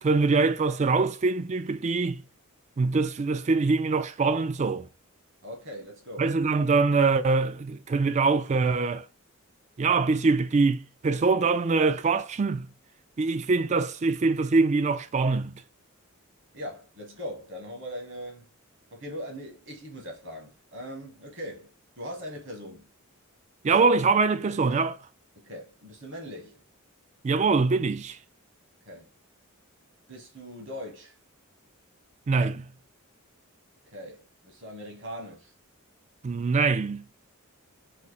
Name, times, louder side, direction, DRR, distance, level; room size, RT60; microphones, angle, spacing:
voice 1, 0.0-2.2 2.8-4.9 6.2-9.0 9.8-12.7 13.2-15.6 23.6-25.0 27.2-28.2 32.3-32.7 36.2-37.0, right 4 dB, 30° right, 0.3 m, -24 dB
voice 2, 5.4-6.3 16.5-18.5 18.9-22.9 25.4-26.6 28.8-29.1 30.1-31.1 33.9-35.5, equal, 60° right, 1.7 m, -40 dB
4.3 x 2.7 x 4.2 m
head